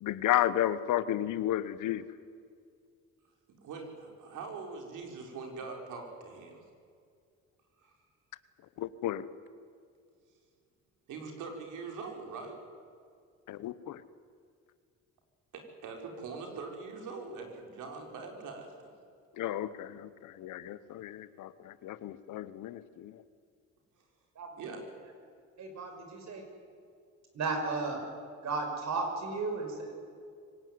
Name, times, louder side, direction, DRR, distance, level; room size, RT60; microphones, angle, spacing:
voice 1, 0.0-2.1 8.8-9.2 13.5-14.0 19.4-23.2, left 12 dB, 85° left, 15 dB, 1.1 m, -32 dB
voice 2, 3.6-6.6 7.8-7.9 11.1-12.7 15.5-18.9 24.6-24.8 29.6-29.7, right 4 dB, 85° right, 2 dB, 4.7 m, -43 dB
voice 3, 25.6-26.4 27.3-28.0 28.4-29.9, right 3 dB, 65° right, 4 dB, 6.0 m, -34 dB
24.5 x 18.5 x 9.6 m, 2.2 s
cardioid pair, 90°, 30 cm